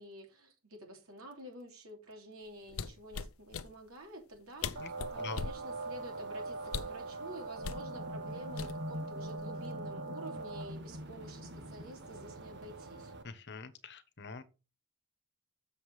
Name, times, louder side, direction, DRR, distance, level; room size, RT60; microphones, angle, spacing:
voice 1, 0.0-13.1, equal, 90° right, 3.0 m, -50 dB
sound 1, 2.7-3.7 4.3-4.4 4.6-5.6 6.7-7.0 7.6-7.9 8.6-9.0 9.4-9.7, left 5 dB, 90° left, 0.6 m, -39 dB
sound 2, 4.8-13.2, right 2 dB, 60° right, 1.4 m, -42 dB
voice 2, 13.2-14.4, left 4 dB, 55° left, 1.2 m, -44 dB
7.5 x 7.0 x 4.8 m
head